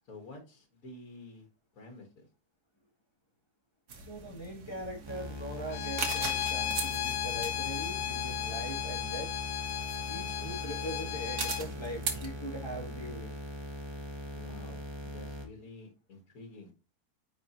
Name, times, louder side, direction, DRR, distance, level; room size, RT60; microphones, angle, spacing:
voice 1, 0.1-1.5 1.7-2.3 14.3-16.7, left 2 dB, 65° left, 4 dB, 1.9 m, -50 dB
sound 1, 3.9-12.3, right 5 dB, 85° right, 1.8 m, -41 dB
voice 2, 4.0-9.3 10.1-13.3, equal, 15° left, -2 dB, 2.5 m, -41 dB
sound 2, 5.1-15.5, equal, 20° right, 1.2 m, -41 dB
Bowed string instrument, 5.7-11.6, left 13 dB, 90° left, 1.1 m, -35 dB
9.6 x 4.1 x 2.9 m, 0.30 s
omnidirectional pair, 1.6 m